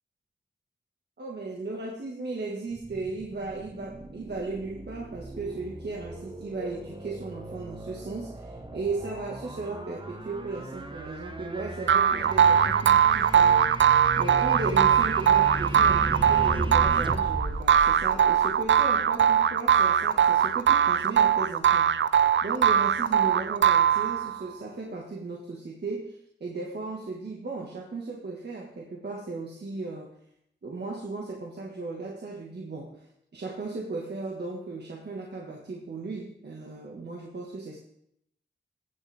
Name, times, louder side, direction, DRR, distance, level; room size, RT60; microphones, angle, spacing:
voice 1, 1.2-13.7 14.2-21.9 22.4-30.1 30.6-37.8, right 3 dB, 60° right, -1 dB, 1.7 m, -36 dB
sound 1, 2.7-18.9, right 2 dB, 25° right, 1.2 m, -36 dB
sound 2, 11.9-24.4, right 8 dB, 80° right, 0.4 m, -21 dB
16.0 x 7.9 x 3.5 m, 0.73 s
cardioid pair, 50°, 19 cm